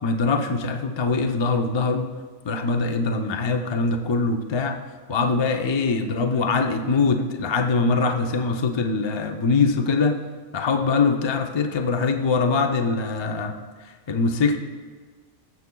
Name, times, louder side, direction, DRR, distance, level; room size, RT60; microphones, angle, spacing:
voice 1, 0.0-2.1 2.4-4.8 5.1-10.2 10.5-13.5 14.1-14.6, left 4 dB, 40° left, 5 dB, 0.4 m, -23 dB
15.5 x 7.1 x 2.3 m, 1.5 s
omnidirectional pair, 1.4 m